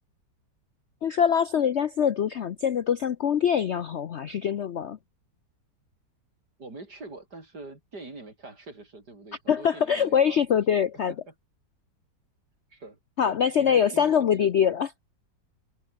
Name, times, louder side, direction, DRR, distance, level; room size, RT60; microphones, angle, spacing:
voice 1, 1.0-5.0 9.5-11.1 13.2-14.9, left 8 dB, 60° left, 0.7 m, -24 dB
voice 2, 6.6-11.3 12.7-14.5, right 2 dB, 65° right, 6.0 m, -44 dB
omnidirectional pair, 1.9 m